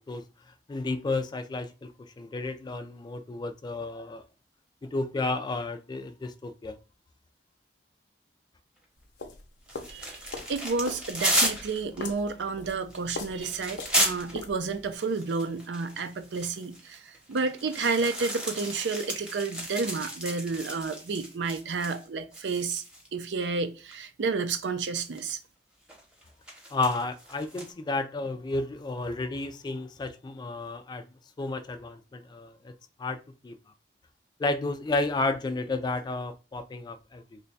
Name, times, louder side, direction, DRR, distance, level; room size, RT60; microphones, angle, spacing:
voice 1, 0.0-4.2 4.8-6.8 26.7-31.1 31.4-32.7 33.0-33.6 34.4-37.4, left 3 dB, 25° left, 0.3 m, -32 dB
sound 1, 9.0-14.9, left 3 dB, 80° left, 0.6 m, -42 dB
sound 2, 9.7-14.4 14.9-22.1 22.3-23.1 23.9-24.0 25.0-25.3 25.9-27.7, right 1 dB, 5° right, 0.8 m, -33 dB
voice 2, 9.9-22.8 23.1-25.4, right 4 dB, 85° right, 0.5 m, -31 dB
3.2 x 2.3 x 3.9 m
head